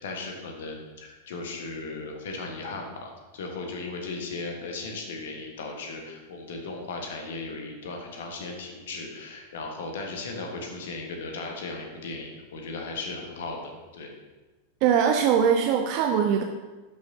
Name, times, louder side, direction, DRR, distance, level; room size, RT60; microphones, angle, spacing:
voice 1, 0.0-14.1, left 3 dB, 60° left, 2 dB, 1.4 m, -36 dB
voice 2, 14.8-16.4, right 8 dB, 45° right, 4 dB, 0.5 m, -21 dB
12.0 x 6.2 x 2.8 m, 1.2 s
figure-of-eight pair, 90°, 0 cm